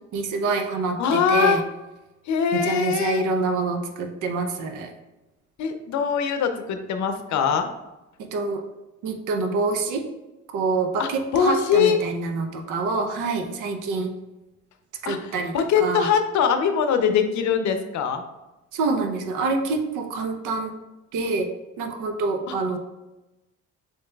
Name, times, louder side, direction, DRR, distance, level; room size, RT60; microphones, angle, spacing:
voice 1, 0.1-1.6 2.5-4.9 8.2-8.6 9.0-10.0 10.5-14.1 15.0-16.1 18.7-20.7 21.1-21.5 21.8-22.8, right 3 dB, 85° right, 5 dB, 0.7 m, -26 dB
voice 2, 1.0-1.6 2.3-3.2 5.6-7.7 11.0-12.0 15.0-15.2 15.5-18.2, left 7 dB, 70° left, 7 dB, 0.6 m, -22 dB
7.1 x 2.8 x 2.2 m, 1.0 s
cardioid pair, 90°, 30 cm